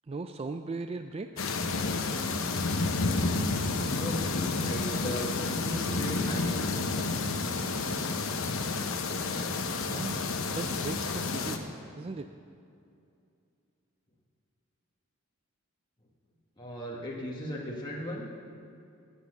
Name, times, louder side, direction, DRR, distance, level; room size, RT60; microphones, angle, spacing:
voice 1, 0.1-1.4 9.9-10.2 10.5-12.3, right 3 dB, 30° right, 8 dB, 0.3 m, -38 dB
sound 1, 1.4-11.6, left 3 dB, 70° left, 0.9 m, -30 dB
voice 2, 3.9-4.3 4.5-6.6 16.6-18.3, equal, 20° left, -4 dB, 1.3 m, -36 dB
13.5 x 8.4 x 6.5 m, 2.5 s
head